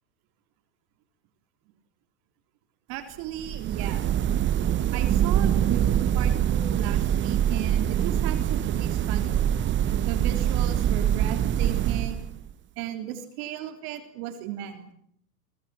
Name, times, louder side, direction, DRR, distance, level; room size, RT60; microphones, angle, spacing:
voice 1, 2.9-4.1 4.9-9.5 10.1-12.3 12.8-14.9, right 10 dB, 45° right, 8 dB, 3.5 m, -36 dB
sound 1, 3.4-12.5, right 10 dB, 25° right, 1.1 m, -24 dB
30.0 x 24.0 x 7.5 m, 0.71 s
hypercardioid pair, 110°, 47 cm